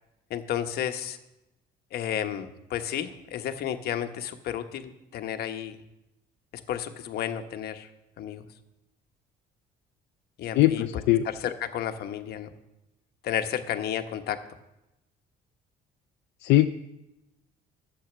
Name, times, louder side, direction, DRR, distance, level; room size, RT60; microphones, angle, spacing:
voice 1, 0.3-1.2 1.9-5.8 6.7-7.9 8.2-8.5 10.4-10.8 11.2-12.5 13.2-14.4, left 10 dB, 70° left, 7 dB, 1.1 m, -32 dB
voice 2, 10.5-11.3 16.4-16.7, left 15 dB, 85° left, 7 dB, 0.5 m, -21 dB
12.0 x 7.9 x 7.0 m, 0.92 s
cardioid pair, 110°, 17 cm